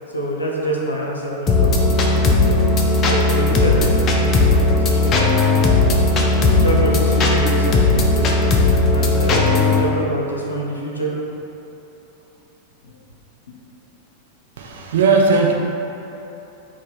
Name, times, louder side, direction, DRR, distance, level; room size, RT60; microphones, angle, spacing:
voice 1, 0.1-2.6 3.1-6.1 6.6-8.5 8.9-11.1 12.8-12.9, right 1 dB, 75° left, -2 dB, 0.6 m, -26 dB
sound 1, 1.5-9.8, left 2 dB, 30° left, 0.4 m, -16 dB
voice 2, 14.6-15.5, right 4 dB, 60° right, 1 dB, 0.4 m, -17 dB
3.6 x 2.4 x 4.1 m, 3.0 s
figure-of-eight pair, 90°, 0 cm